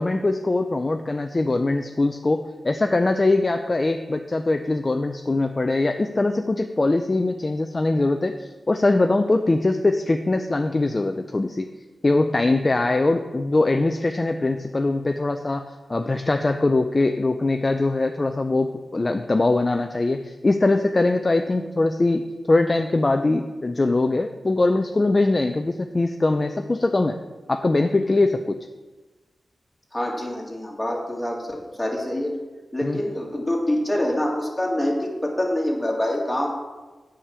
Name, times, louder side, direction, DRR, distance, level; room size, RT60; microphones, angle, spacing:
voice 1, 0.0-11.7 12.0-27.2 27.5-28.6 32.8-33.0, left 2 dB, 30° left, 6 dB, 0.4 m, -22 dB
voice 2, 29.9-32.3 32.7-36.5, left 1 dB, 10° left, -1 dB, 1.9 m, -25 dB
8.6 x 5.0 x 6.8 m, 1.2 s
wide cardioid pair, 105°, 0 cm